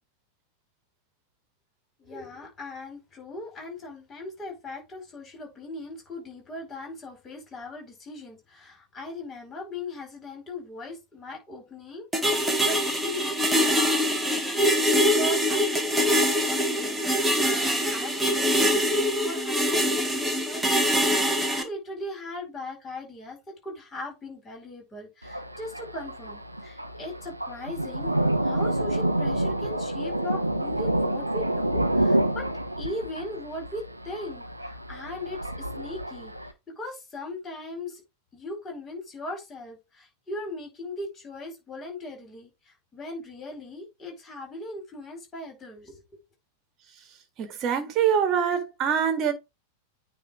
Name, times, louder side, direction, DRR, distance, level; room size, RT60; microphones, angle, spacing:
voice 1, 2.0-28.1 28.4-32.5 32.8-36.3 36.8-38.0 38.3-46.0, left 2 dB, 20° left, 4.6 m, -39 dB
sound 1, 12.1-21.6, equal, 5° right, 1.4 m, -24 dB
Thunder, 25.2-36.5, right 1 dB, 85° right, 0.8 m, -28 dB
voice 2, 47.4-49.3, right 8 dB, 35° right, 1.9 m, -24 dB
9.2 x 3.3 x 4.7 m
figure-of-eight pair, 90°, 0 cm